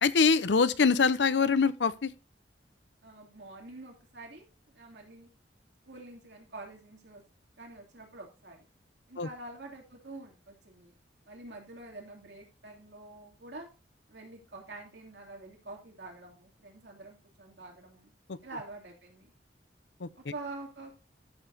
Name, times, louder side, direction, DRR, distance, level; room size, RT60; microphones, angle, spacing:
voice 1, 0.0-2.1 9.2-9.3 18.3-18.4 20.0-20.1, left 5 dB, 80° left, 0.7 m, -24 dB
voice 2, 3.0-5.3 5.8-7.2 7.6-8.6 9.1-10.9 11.3-13.7 14.1-18.1 18.4-19.3 20.2-20.9, right 2 dB, 70° right, 2.9 m, -46 dB
13.5 x 7.0 x 2.7 m
head